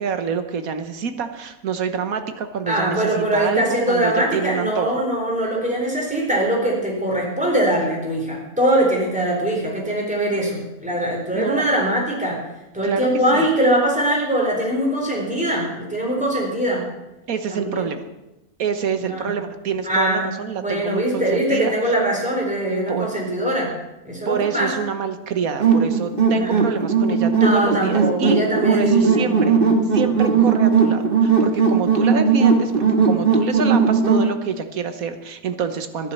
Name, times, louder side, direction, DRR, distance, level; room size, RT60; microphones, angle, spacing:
voice 1, 0.0-4.9 11.3-11.7 12.8-13.5 17.3-18.0 18.6-21.7 22.9-23.1 24.2-28.4 28.7-29.6 29.9-32.7 33.0-36.1, right 6 dB, 65° right, 8 dB, 1.5 m, -26 dB
voice 2, 2.7-12.4 12.7-16.8 17.5-17.9 19.0-19.3 19.8-20.3 20.6-23.7 24.0-24.7 26.3-26.7 27.4-29.7 30.1-30.3, right 1 dB, 5° right, -2 dB, 4.1 m, -22 dB
sound 1, 25.6-34.3, right 5 dB, 35° right, 1.9 m, -18 dB
12.0 x 10.5 x 7.0 m, 0.97 s
omnidirectional pair, 1.6 m